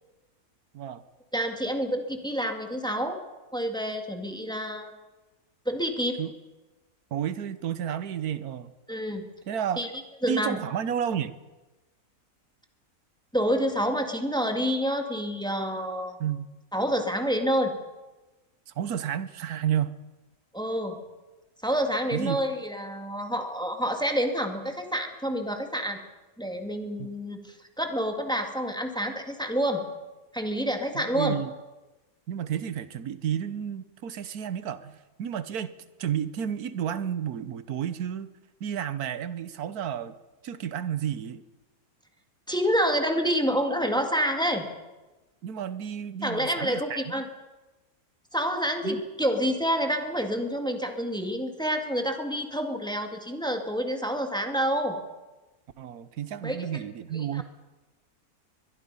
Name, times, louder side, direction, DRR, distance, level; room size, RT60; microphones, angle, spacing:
voice 1, 1.3-3.2 3.5-4.9 5.7-6.2 8.9-9.3 9.8-9.9 10.2-10.6 13.3-16.2 16.7-17.7 20.5-21.0 21.6-26.0 26.4-29.8 30.3-31.4 42.5-44.6 46.2-47.3 48.3-55.0 56.4-56.8 57.1-57.4, equal, 5° left, 4 dB, 2.1 m, -28 dB
voice 2, 7.1-8.7 9.5-9.9 10.3-11.4 16.2-16.5 18.7-20.0 22.1-22.4 27.0-27.1 30.9-31.5 32.3-35.7 36.0-38.3 38.6-40.2 40.4-41.4 45.4-47.1 48.8-49.0 55.8-57.4, right 9 dB, 90° right, 14 dB, 1.5 m, -31 dB
22.5 x 22.0 x 5.5 m, 1.1 s
omnidirectional pair, 1.6 m